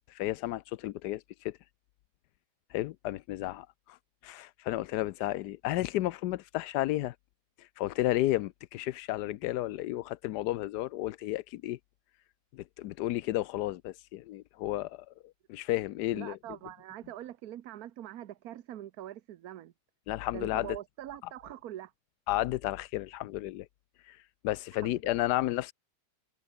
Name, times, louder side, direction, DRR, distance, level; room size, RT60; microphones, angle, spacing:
voice 1, 0.0-1.6 2.7-4.0 4.2-7.1 7.6-11.8 12.5-15.1 15.5-16.4 20.1-20.8 22.3-23.7 24.0-25.7, left 15 dB, 85° left, 1.2 m, -32 dB
voice 2, 16.1-19.7 20.3-21.9 24.8-25.0, right 12 dB, 70° right, 1.3 m, -43 dB
omnidirectional pair, 1.7 m